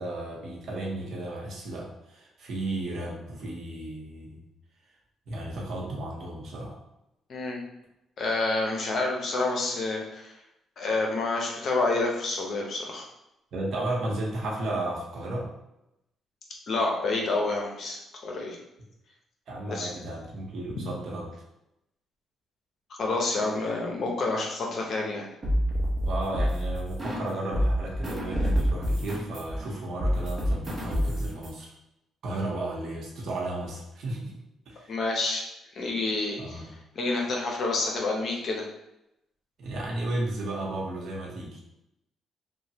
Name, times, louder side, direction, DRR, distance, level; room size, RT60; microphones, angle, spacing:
voice 1, 0.0-4.4 5.3-6.8 13.5-15.5 19.5-21.3 26.1-31.7 32.2-34.4 34.7-34.9 36.4-36.7 39.6-41.6, right 1 dB, 65° right, -2 dB, 0.8 m, -34 dB
voice 2, 7.3-7.6 8.2-10.3 10.8-13.0 16.7-18.6 19.7-19.9 23.0-25.3 34.9-35.4 35.7-36.6 37.0-38.6, left 3 dB, 55° left, 0 dB, 0.7 m, -28 dB
sound 1, 25.4-27.3 27.5-31.5, equal, 30° right, 0.9 m, -27 dB
3.1 x 2.2 x 2.8 m, 0.87 s
cardioid pair, 90°, 0 cm